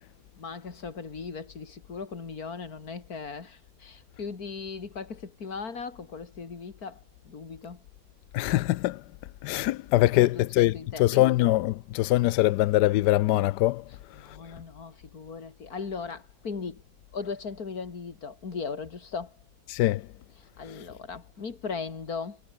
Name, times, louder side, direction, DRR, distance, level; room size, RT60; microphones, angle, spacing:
voice 1, 0.4-7.8 10.0-11.3 14.1-16.8 17.1-19.4 20.4-22.4, left 5 dB, 50° left, 2.9 m, -38 dB
voice 2, 8.3-9.0 9.4-13.8 19.7-20.0, left 16 dB, 75° left, 1.0 m, -23 dB
omnidirectional pair, 2.1 m